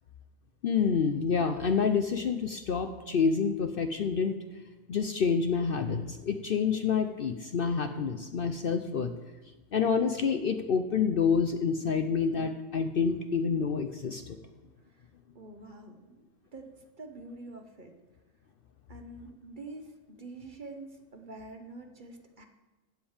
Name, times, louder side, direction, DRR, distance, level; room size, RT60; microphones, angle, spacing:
voice 1, 0.6-4.3 4.9-9.1 9.7-14.4, left 6 dB, 55° left, 7 dB, 0.7 m, -28 dB
voice 2, 15.3-16.3 16.5-16.7 17.0-17.9 18.9-22.4, right 2 dB, 40° right, 5 dB, 1.0 m, -46 dB
15.0 x 5.2 x 7.1 m, 1.2 s
omnidirectional pair, 1.3 m